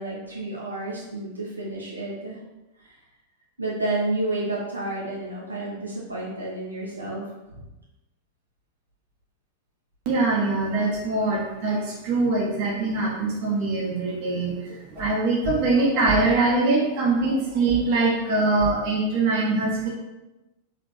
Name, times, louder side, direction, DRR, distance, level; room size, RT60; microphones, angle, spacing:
voice 1, 0.0-2.4 2.8-2.9 3.6-7.2 7.5-7.6, right 2 dB, 85° right, -6 dB, 1.3 m, -30 dB
voice 2, 10.0-19.9, right 3 dB, 45° right, -4 dB, 1.2 m, -23 dB
3.6 x 3.2 x 4.3 m, 1.0 s
figure-of-eight pair, 90°, 0 cm